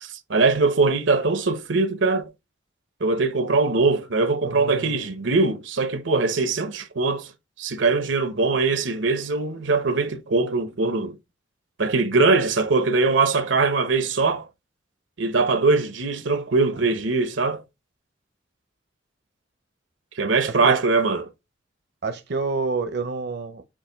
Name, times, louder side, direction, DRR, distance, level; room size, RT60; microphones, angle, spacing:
voice 1, 0.0-2.2 3.0-7.3 7.6-11.2 11.8-14.4 15.2-17.6 20.2-21.3, right 3 dB, 85° right, 1.0 m, -21 dB
voice 2, 4.4-5.1 20.5-20.8 22.0-23.6, right 4 dB, 60° right, 0.7 m, -28 dB
7.4 x 2.6 x 5.1 m
head